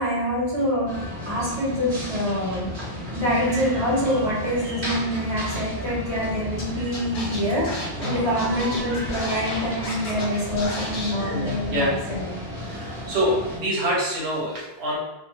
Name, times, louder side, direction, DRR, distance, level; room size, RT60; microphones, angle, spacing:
voice 1, 0.0-12.3, equal, 25° right, -8 dB, 1.1 m, -26 dB
sound 1, 0.9-13.6, left 1 dB, 55° right, 1.1 m, -34 dB
Scratching (performance technique), 6.6-6.7 6.9-10.2 10.6-11.1, left 1 dB, 55° left, 0.8 m, -34 dB
voice 2, 7.9-8.9 11.2-11.9 12.6-15.0, equal, 80° right, -6 dB, 1.1 m, -27 dB
2.6 x 2.3 x 3.0 m, 0.96 s
omnidirectional pair, 1.1 m